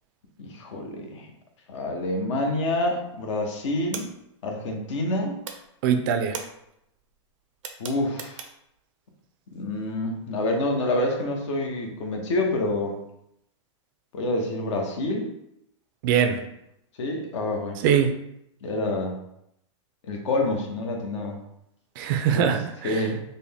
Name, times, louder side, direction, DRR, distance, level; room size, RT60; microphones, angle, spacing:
voice 1, 0.4-1.3 1.7-4.1 4.4-5.4 7.8-8.4 9.5-13.0 14.1-15.3 17.0-17.8 18.6-19.2 20.0-21.4 22.3-22.5 22.8-23.2, left 2 dB, 65° left, 2 dB, 0.9 m, -27 dB
sound 1, 2.9-3.1 3.4-5.1 5.4-8.8, right 6 dB, 90° right, 0.6 m, -40 dB
voice 2, 5.8-6.4 16.0-16.4 17.8-18.1 22.0-23.0, right 8 dB, 45° right, 7 dB, 0.4 m, -22 dB
3.9 x 2.1 x 3.4 m, 0.79 s
hypercardioid pair, 140°, 16 cm